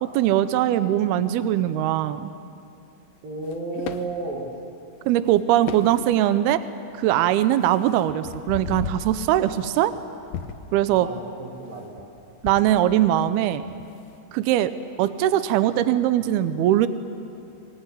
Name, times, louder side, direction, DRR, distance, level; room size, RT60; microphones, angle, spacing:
voice 1, 0.0-2.3 5.1-6.6 6.9-9.9 10.7-11.1 12.4-13.6 14.3-14.7 15.0-16.9, right 12 dB, 80° right, 12 dB, 2.7 m, -21 dB
voice 2, 3.2-4.5 10.9-12.1, right 3 dB, 65° right, 0 dB, 4.0 m, -33 dB
sound 1, 3.4-4.1 5.3-5.4 5.7-6.3 7.0-7.1 7.5-10.0 10.3-10.8 12.0-13.2 13.5-13.8, left 8 dB, 70° left, 2.3 m, -36 dB
25.0 x 20.5 x 10.0 m, 2.8 s
omnidirectional pair, 4.5 m